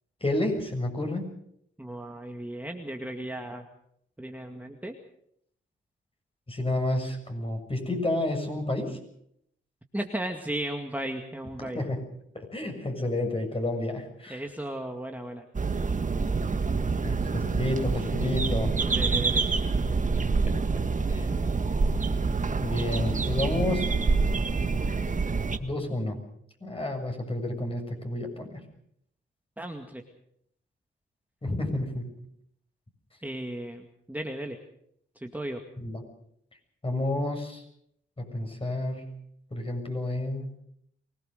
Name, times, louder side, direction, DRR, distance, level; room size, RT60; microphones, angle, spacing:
voice 1, 0.2-1.3 6.5-9.0 11.6-12.0 12.3-14.4 17.0-18.7 21.1-21.4 22.6-23.9 25.6-26.2 26.6-28.6 31.4-32.0 35.8-36.0 36.8-37.6 38.2-39.1 39.5-40.5, left 1 dB, 25° left, 4 dB, 7.0 m, -30 dB
voice 2, 1.8-3.7 4.2-5.0 9.9-11.8 14.3-15.5 18.8-19.4 29.6-30.0 33.2-34.6 35.2-35.6, right 1 dB, 10° right, 3 dB, 2.2 m, -35 dB
sound 1, 15.5-25.6, right 4 dB, 40° right, 1.8 m, -26 dB
24.0 x 18.5 x 6.6 m, 0.72 s
cardioid pair, 65°, 21 cm